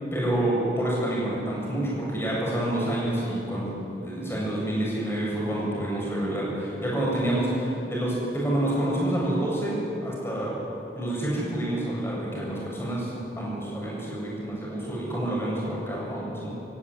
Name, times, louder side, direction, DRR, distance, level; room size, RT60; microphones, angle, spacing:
voice 1, 0.1-3.7 4.0-9.8 10.0-10.5 10.9-16.5, right 1 dB, 15° left, -5 dB, 7.9 m, -28 dB
26.0 x 16.0 x 10.0 m, 2.9 s
head